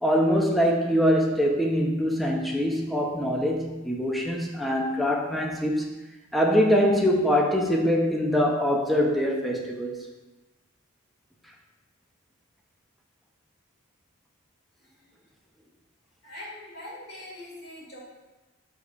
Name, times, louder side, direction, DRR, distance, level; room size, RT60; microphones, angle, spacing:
voice 1, 0.0-5.9 6.3-10.1, equal, ahead, 0 dB, 0.4 m, -23 dB
voice 2, 16.2-18.0, left 1 dB, 50° left, -6 dB, 1.5 m, -43 dB
5.2 x 3.9 x 2.4 m, 1.1 s
head